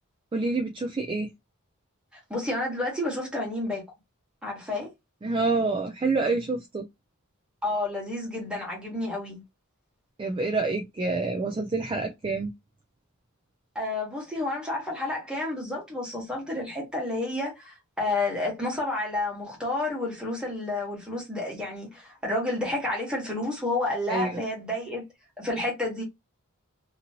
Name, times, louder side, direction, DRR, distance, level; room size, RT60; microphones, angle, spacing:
voice 1, 0.3-1.3 5.2-6.9 10.2-12.5 24.1-24.4, right 3 dB, 25° right, 0.3 m, -27 dB
voice 2, 2.3-3.8 4.4-4.9 7.6-9.4 13.7-25.0 25.4-26.0, left 2 dB, 5° right, 1.3 m, -30 dB
2.9 x 2.6 x 2.8 m
head